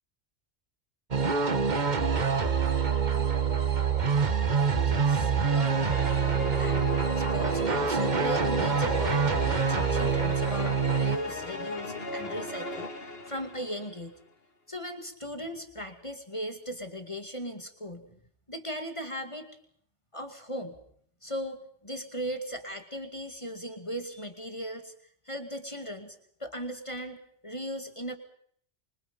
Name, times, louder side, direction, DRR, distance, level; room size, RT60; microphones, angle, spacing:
sound 1, 1.1-11.2, right 6 dB, 40° right, 1.4 m, -26 dB
voice 1, 4.8-6.0 6.6-6.9 7.2-14.1 14.7-18.1 18.5-19.5 20.1-20.8 21.2-24.9 25.2-28.2, equal, 25° left, 6 dB, 2.4 m, -38 dB
sound 2, 5.4-14.0, left 2 dB, 55° left, 2.9 m, -37 dB
26.0 x 24.5 x 5.5 m, 0.63 s
omnidirectional pair, 1.2 m